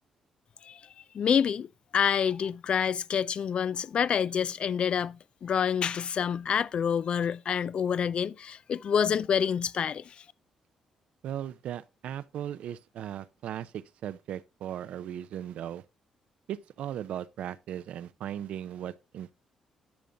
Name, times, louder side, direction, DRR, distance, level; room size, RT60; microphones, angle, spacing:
voice 1, 1.1-1.7 1.9-10.0, left 7 dB, 55° left, 0.4 m, -27 dB
voice 2, 11.2-15.8 16.5-19.3, right 10 dB, 75° right, 0.6 m, -37 dB
10.5 x 6.3 x 3.9 m
supercardioid pair, 65°, 2 cm